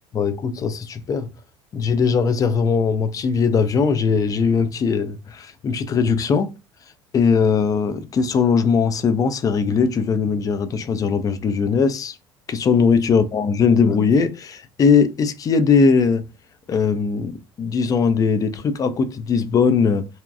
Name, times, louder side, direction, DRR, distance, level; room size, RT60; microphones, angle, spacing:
voice 1, 0.1-1.3 1.7-6.5 7.1-12.2 12.5-16.3 16.7-20.1, left 5 dB, 25° left, 0.4 m, -19 dB
2.7 x 2.1 x 2.4 m
figure-of-eight pair, 65°, 13 cm